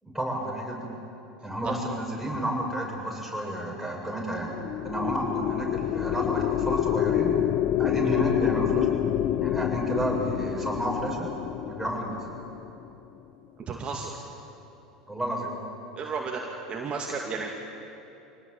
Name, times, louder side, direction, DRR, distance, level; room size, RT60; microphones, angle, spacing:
voice 1, 0.0-0.9 1.4-4.5 4.8-7.4 7.8-8.9 9.4-11.3 11.7-12.2 15.1-15.5, right 1 dB, ahead, -3 dB, 7.5 m, -31 dB
sound 1, 4.4-12.9, left 11 dB, 45° left, 1.0 m, -27 dB
voice 2, 13.7-14.1 16.0-16.4 16.7-17.6, right 4 dB, 30° right, 0 dB, 2.4 m, -33 dB
25.5 x 18.5 x 9.1 m, 2.9 s
hypercardioid pair, 80°, 4 cm